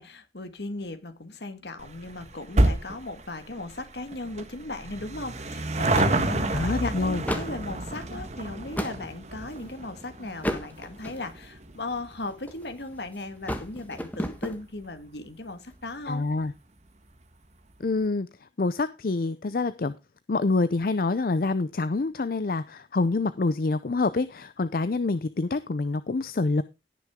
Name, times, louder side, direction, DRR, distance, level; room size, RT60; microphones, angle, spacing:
voice 1, 0.0-7.0 7.3-16.3, left 2 dB, 70° left, 10 dB, 1.7 m, -37 dB
sound 1, 1.8-14.5 14.8-14.9 15.8-15.9 16.1-16.2 16.5-16.6, right 1 dB, 40° right, 1.4 m, -30 dB
sound 2, 5.3-5.5 6.0-6.6 7.1-7.6 8.3-9.0 9.6-9.9 10.4-11.4 12.1-12.8 13.1-14.6, equal, 10° left, 1.3 m, -33 dB
voice 2, 6.5-7.2 16.1-16.5 17.8-18.3 18.6-19.9 20.3-26.6, left 3 dB, 50° left, 14 dB, 0.5 m, -26 dB
17.5 x 6.2 x 3.6 m, 0.26 s
head